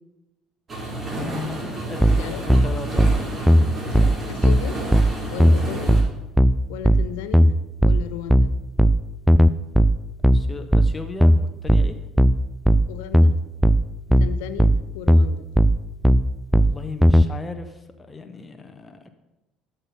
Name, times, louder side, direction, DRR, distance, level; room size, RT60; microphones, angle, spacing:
sound 1, 0.7-6.0, right 1 dB, 30° right, 3.1 m, -31 dB
voice 1, 1.1-3.1 10.3-12.0 16.5-19.1, left 4 dB, 20° left, 7 dB, 0.9 m, -36 dB
sound 2, 2.0-17.3, equal, ahead, 0.4 m, -17 dB
voice 2, 3.9-4.8 5.3-6.0 6.7-7.5 7.8-8.5 12.9-13.3 14.2-15.5, left 10 dB, 65° left, 11 dB, 0.6 m, -35 dB
12.0 x 5.6 x 5.6 m, 1.0 s
figure-of-eight pair, 60°, 0 cm